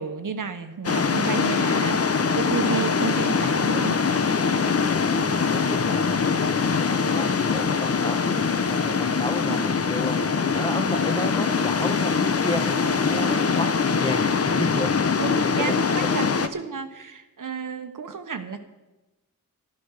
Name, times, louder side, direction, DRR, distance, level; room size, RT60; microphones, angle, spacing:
voice 1, 0.0-4.1 9.5-9.6 15.2-18.6, right 5 dB, 65° right, 8 dB, 1.2 m, -31 dB
sound 1, 0.8-16.5, left 5 dB, 45° left, 0.8 m, -23 dB
voice 2, 4.8-10.2 10.5-15.0 15.6-15.8, left 1 dB, 15° left, 6 dB, 1.2 m, -33 dB
sound 2, 11.6-15.1, equal, 15° right, 2.0 m, -45 dB
12.0 x 11.5 x 6.5 m, 1.1 s
wide cardioid pair, 80°, 34 cm